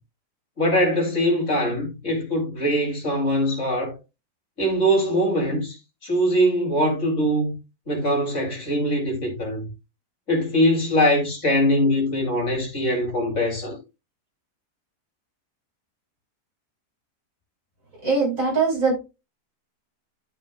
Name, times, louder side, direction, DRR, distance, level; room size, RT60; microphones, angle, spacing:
voice 1, 0.6-3.9 4.6-5.8 6.0-7.5 7.9-9.7 10.3-13.8, equal, 45° left, 3.3 m, -22 dB
voice 2, 18.0-19.0, right 4 dB, 50° right, 5.7 m, -21 dB
12.0 x 5.5 x 2.3 m
omnidirectional pair, 1.8 m